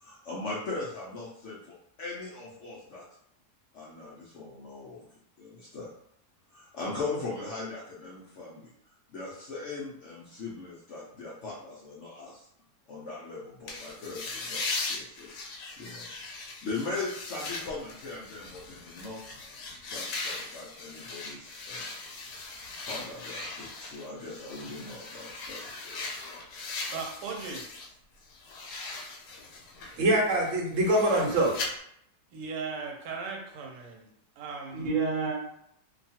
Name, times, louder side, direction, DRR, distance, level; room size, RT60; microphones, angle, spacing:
voice 1, 0.0-3.0 3.7-5.0 5.4-5.9 6.5-8.7 9.1-12.5 12.9-15.3 15.8-16.1 16.6-19.3 19.9-21.9 22.9-26.0, left 3 dB, 65° left, -5 dB, 0.7 m, -39 dB
sound 1, 13.7-27.9 28.2-31.7, left 3 dB, 90° left, 1.3 m, -39 dB
voice 2, 26.9-27.7 32.3-34.1 34.4-34.9, right 5 dB, 80° right, 1 dB, 1.2 m, -37 dB
voice 3, 30.0-31.5 34.7-35.4, right 1 dB, 55° right, -3 dB, 1.1 m, -25 dB
2.9 x 2.3 x 2.7 m, 0.70 s
omnidirectional pair, 1.8 m